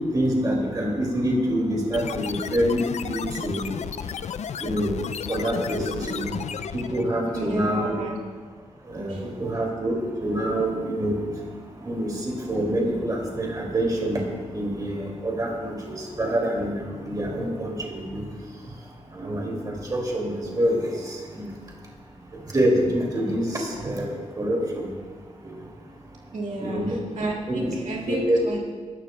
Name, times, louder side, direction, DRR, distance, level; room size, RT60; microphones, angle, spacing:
voice 1, 0.1-3.9 4.6-5.0 5.3-6.4 6.7-7.9 8.9-11.1 11.8-14.2 14.5-18.2 19.1-21.5 22.5-24.9 26.6-27.0 27.5-27.7 28.1-28.5, right 1 dB, 30° right, -1 dB, 2.3 m, -26 dB
sound 1, 1.9-7.1, left 8 dB, 65° left, 0.4 m, -33 dB
voice 2, 7.3-8.2 9.1-9.4 23.5-23.6 26.3-28.6, right 2 dB, 80° right, -2 dB, 2.1 m, -32 dB
22.0 x 12.0 x 2.2 m, 1.5 s
wide cardioid pair, 135°, 12 cm